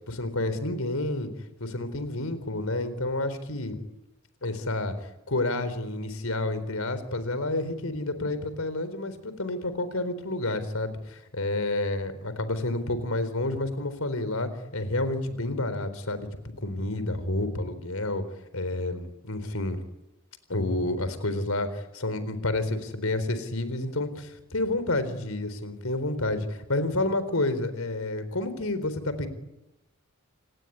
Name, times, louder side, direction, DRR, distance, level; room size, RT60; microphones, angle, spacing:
voice 1, 0.1-1.3 1.6-3.8 4.4-4.9 5.3-16.3 16.6-18.2 18.5-19.8 20.5-29.3, left 2 dB, 85° left, 12 dB, 4.1 m, -29 dB
29.0 x 18.5 x 10.0 m, 0.94 s
head